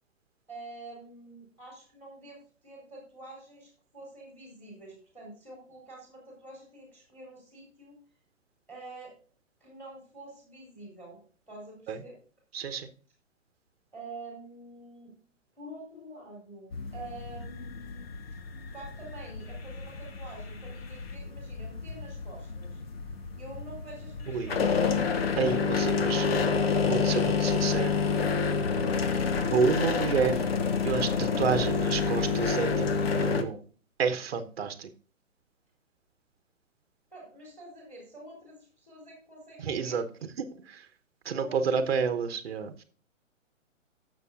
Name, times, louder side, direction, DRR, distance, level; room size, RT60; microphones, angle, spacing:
voice 1, 0.5-8.0 8.7-9.1 9.6-12.2 13.9-15.1 15.5-18.1 18.7-22.8 23.4-25.4 37.1-40.6 41.2-41.8, right 2 dB, 5° left, 3.8 m, -47 dB
voice 2, 12.5-12.9 24.3-24.5 25.4-26.3 26.5-28.0 29.5-30.5 30.8-33.6 34.0-34.9 39.6-40.1 40.4-40.8 41.2-42.8, right 6 dB, 50° right, 1.1 m, -30 dB
sound 1, 16.7-33.4, left 5 dB, 50° left, 1.2 m, -29 dB
16.5 x 6.9 x 2.5 m
figure-of-eight pair, 125°, 40 cm